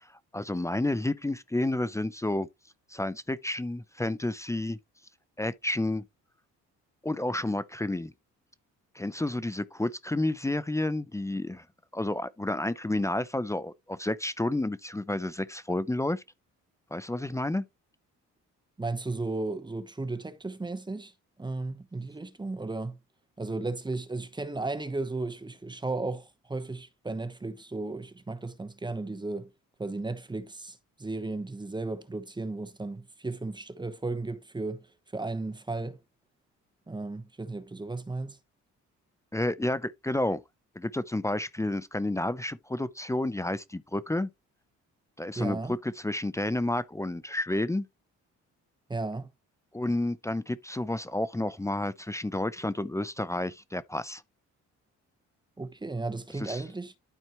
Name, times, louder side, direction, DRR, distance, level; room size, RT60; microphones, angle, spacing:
voice 1, 0.0-2.5 2.9-4.8 5.4-6.0 7.0-8.1 8.9-11.6 11.9-16.2 16.9-17.6 39.3-40.4 40.8-44.3 45.2-47.9 49.7-54.2 56.4-56.6, left 1 dB, 10° left, 0.6 m, -30 dB
voice 2, 18.8-21.1 21.4-23.0 23.4-29.5 29.8-36.0 36.9-38.4 45.4-45.8 48.9-49.3 55.6-56.9, right 3 dB, 15° right, 1.0 m, -35 dB
12.5 x 4.4 x 3.0 m
cardioid pair, 90°, 30 cm